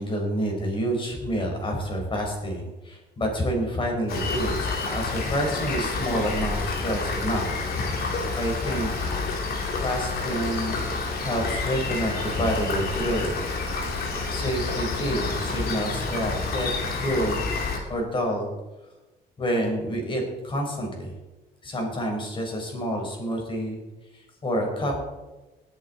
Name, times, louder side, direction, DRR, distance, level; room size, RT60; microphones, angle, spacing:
voice 1, 0.0-7.5 8.4-8.9 9.8-10.9 11.2-13.4 13.8-16.7 17.0-17.4 17.9-18.5 19.4-21.1 21.6-23.8 24.1-25.0, equal, 30° left, 1 dB, 4.5 m, -28 dB
Rain, 4.1-17.8, left 3 dB, 65° left, 3.0 m, -29 dB
19.0 x 8.4 x 4.3 m, 1.1 s
cardioid pair, 110°, 17 cm